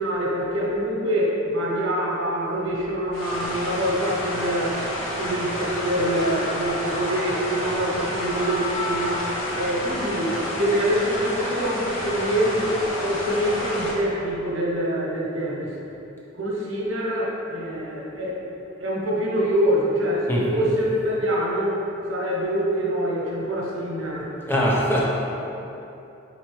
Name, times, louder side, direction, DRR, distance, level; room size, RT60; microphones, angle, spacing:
voice 1, 0.0-4.8 5.2-15.7 16.3-18.4 18.8-21.8 22.1-24.3, equal, 75° right, -4 dB, 0.9 m, -25 dB
sound 1, 3.1-13.9, left 1 dB, 75° left, 0.7 m, -30 dB
sound 2, 6.1-10.6 11.0-11.2, left 2 dB, 30° left, 0.9 m, -36 dB
voice 2, 20.3-20.6 24.4-25.0, equal, 10° left, -4 dB, 0.5 m, -22 dB
4.3 x 3.8 x 3.1 m, 2.9 s
head